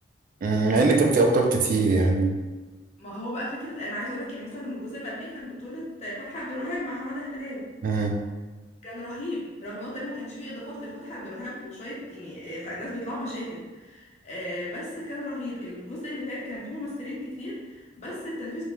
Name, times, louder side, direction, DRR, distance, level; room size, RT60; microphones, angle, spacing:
voice 1, 0.4-2.4 7.8-8.2, right 3 dB, 50° right, 2 dB, 0.3 m, -21 dB
voice 2, 3.0-7.7 8.8-18.7, left 1 dB, 40° left, -5 dB, 0.7 m, -35 dB
2.9 x 2.2 x 2.3 m, 1.2 s
head